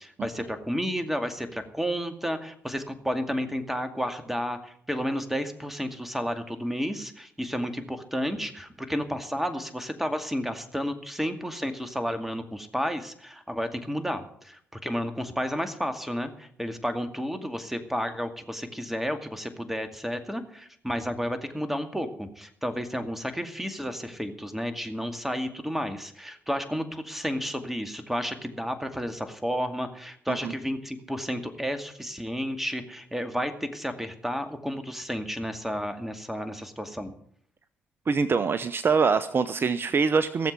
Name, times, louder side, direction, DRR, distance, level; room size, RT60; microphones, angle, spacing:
voice 1, 0.0-37.1, equal, 5° right, 8 dB, 2.3 m, -32 dB
voice 2, 38.1-40.5, right 5 dB, 40° right, 14 dB, 0.7 m, -24 dB
17.0 x 7.4 x 8.4 m, 0.62 s
hypercardioid pair, 45°, 6 cm